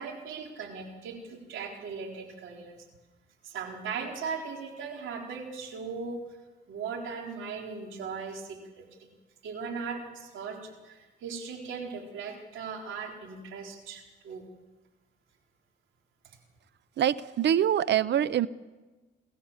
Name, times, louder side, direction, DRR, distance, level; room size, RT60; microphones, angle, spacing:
voice 1, 0.0-2.9 3.4-6.2 6.7-9.1 9.4-14.5 16.2-16.4, right 5 dB, 80° right, 1 dB, 4.1 m, -38 dB
voice 2, 17.0-18.5, right 10 dB, 60° right, 18 dB, 0.7 m, -24 dB
29.5 x 14.0 x 7.3 m, 1.2 s
cardioid pair, 90°, 20 cm